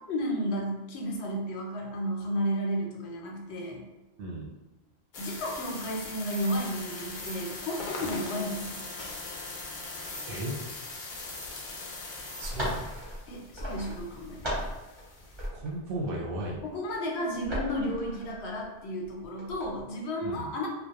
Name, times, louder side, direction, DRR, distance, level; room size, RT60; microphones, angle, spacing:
voice 1, 0.1-3.8 5.2-8.8 13.3-14.6 16.6-20.7, equal, 85° left, 0 dB, 0.9 m, -33 dB
sound 1, 5.1-15.5, left 3 dB, 55° left, 0.6 m, -41 dB
sound 2, 12.4-15.0 15.3-16.9 17.3-18.7 19.0-19.8, equal, 30° right, 0.7 m, -37 dB
voice 2, 12.4-12.8 15.5-16.6 20.2-20.5, right 1 dB, 65° right, -2 dB, 0.7 m, -34 dB
2.2 x 2.0 x 2.8 m, 1.1 s
omnidirectional pair, 1.1 m